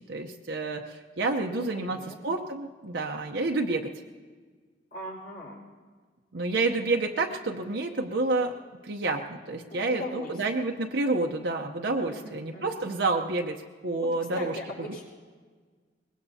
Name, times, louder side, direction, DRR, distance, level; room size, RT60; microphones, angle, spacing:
voice 1, 0.1-3.9 6.3-8.6 8.8-14.6 14.9-15.0, right 3 dB, 75° right, 2 dB, 0.8 m, -29 dB
voice 2, 1.4-2.1 4.9-5.5 9.7-10.3 10.6-10.7 12.1-12.8 13.9-15.0, left 1 dB, 60° left, -3 dB, 4.8 m, -40 dB
23.5 x 20.5 x 2.8 m, 1.5 s
head